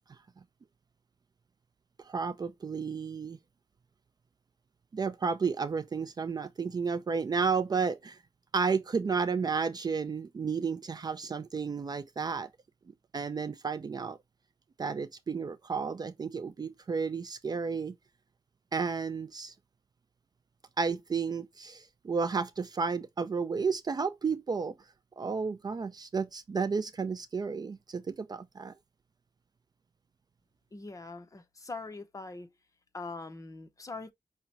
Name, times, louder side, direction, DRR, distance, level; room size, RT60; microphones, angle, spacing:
voice 1, 2.0-3.4 4.9-8.2 8.5-12.5 13.1-14.2 14.8-18.0 18.7-19.5 20.8-24.8 25.2-28.7, right 5 dB, 35° right, 0.4 m, -32 dB
voice 2, 30.7-32.5 32.9-34.1, left 3 dB, 30° left, 0.7 m, -42 dB
5.8 x 2.1 x 3.9 m
wide cardioid pair, 125°, 11 cm